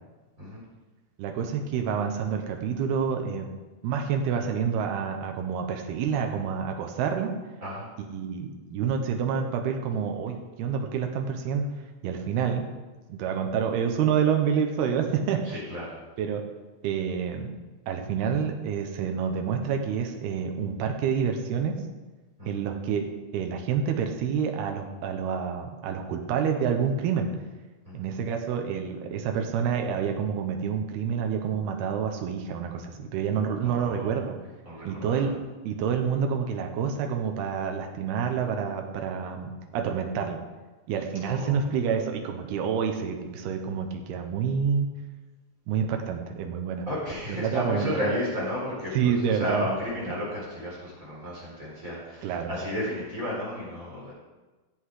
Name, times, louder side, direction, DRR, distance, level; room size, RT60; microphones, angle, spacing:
voice 1, 1.2-3.5 3.8-7.3 8.1-11.7 12.0-12.7 13.1-15.6 16.2-16.4 16.8-17.6 17.9-21.8 22.5-23.0 23.3-27.3 27.9-34.4 34.8-35.3 35.7-40.4 40.9-44.9 45.7-46.9 47.3-48.0 48.9-49.7 50.1-50.2 52.2-52.5, right 7 dB, 80° right, 4 dB, 2.3 m, -28 dB
voice 2, 7.6-7.9 15.4-16.0 22.4-22.6 27.8-28.1 33.6-34.2 34.6-35.2 41.2-41.6 46.9-54.1, left 1 dB, 15° right, -6 dB, 4.1 m, -33 dB
17.5 x 8.0 x 4.9 m, 1.2 s
omnidirectional pair, 6.0 m